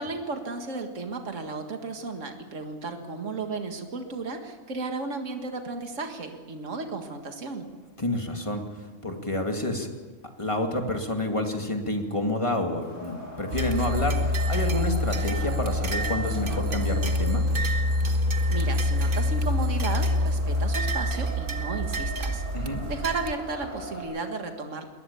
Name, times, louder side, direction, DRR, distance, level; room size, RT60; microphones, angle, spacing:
voice 1, 0.0-7.7 18.1-18.2 18.5-24.9, right 3 dB, 70° right, 5 dB, 2.2 m, -34 dB
voice 2, 8.0-8.6 9.0-9.9 10.4-17.5 22.5-22.8, left 1 dB, 25° left, 3 dB, 2.4 m, -29 dB
Wind, 12.8-24.0, left 1 dB, 70° left, 7.2 m, -42 dB
sound 1, 13.5-23.3, left 1 dB, 45° right, 1.4 m, -26 dB
22.0 x 19.5 x 7.0 m, 1.4 s
omnidirectional pair, 1.4 m